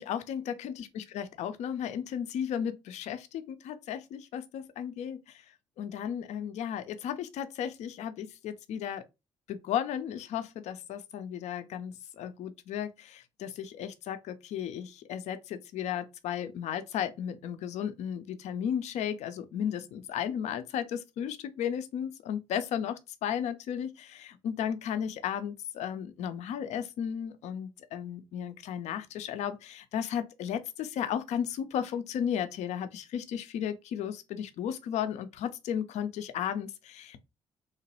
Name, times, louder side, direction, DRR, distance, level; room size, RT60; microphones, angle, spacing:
voice 1, 0.0-5.5 5.8-9.0 9.5-37.2, left 9 dB, 55° left, 0.4 m, -34 dB
3.0 x 2.1 x 2.8 m
figure-of-eight pair, 40°, 14 cm